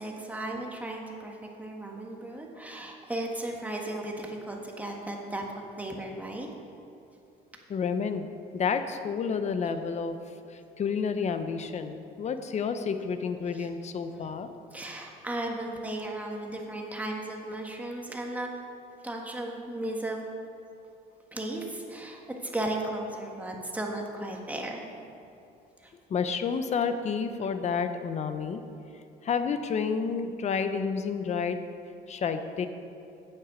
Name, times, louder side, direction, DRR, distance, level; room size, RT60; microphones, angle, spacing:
voice 1, 0.0-6.5 13.5-13.7 14.1-14.4 14.7-18.5 19.0-20.2 21.3-24.9 25.8-25.9, right 1 dB, 10° right, 0 dB, 1.5 m, -35 dB
voice 2, 7.7-8.3 8.5-10.2 10.5-14.5 26.1-28.6 29.2-31.6 32.1-32.7, left 6 dB, 40° left, 9 dB, 0.8 m, -30 dB
9.1 x 7.8 x 6.3 m, 2.6 s
cardioid pair, 110°, 17 cm